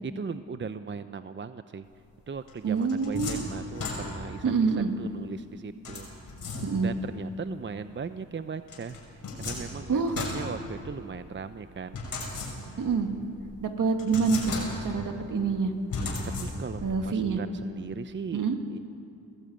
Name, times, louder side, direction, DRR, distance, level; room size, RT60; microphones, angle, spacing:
voice 1, 0.0-1.8 2.3-6.1 6.8-12.0 16.4-18.5 18.7-18.8, right 5 dB, 35° right, 11 dB, 0.7 m, -38 dB
sound 1, 2.5-4.5 5.9-7.1 8.7-11.2 11.9-12.9 13.4-13.5 14.0-15.1 15.9-16.9, left 3 dB, 75° left, 6.1 m, -36 dB
voice 2, 2.6-3.3 4.4-4.9 6.6-6.9 9.9-10.2 12.8-13.1 13.6-15.7 16.8-17.4 18.3-18.6, right 5 dB, 65° right, 5 dB, 2.2 m, -26 dB
20.5 x 15.0 x 8.8 m, 2.6 s
cardioid pair, 50°, 34 cm